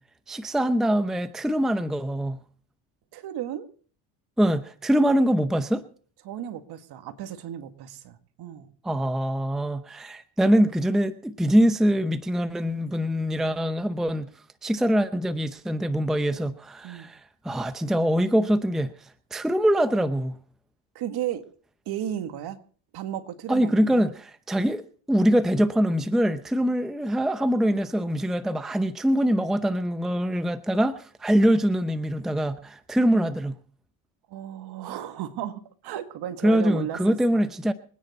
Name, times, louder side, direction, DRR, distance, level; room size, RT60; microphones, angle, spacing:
voice 1, 0.3-2.4 4.4-5.8 8.8-14.3 14.6-20.4 23.5-24.8 25.1-33.5 36.4-37.7, equal, ahead, 0.7 m, -23 dB
voice 2, 3.1-3.7 6.2-8.7 16.8-17.1 21.0-21.4 21.9-22.6 22.9-24.0 34.3-37.4, right 11 dB, 50° right, 1.9 m, -34 dB
25.0 x 9.7 x 4.2 m
supercardioid pair, 100°, 47 cm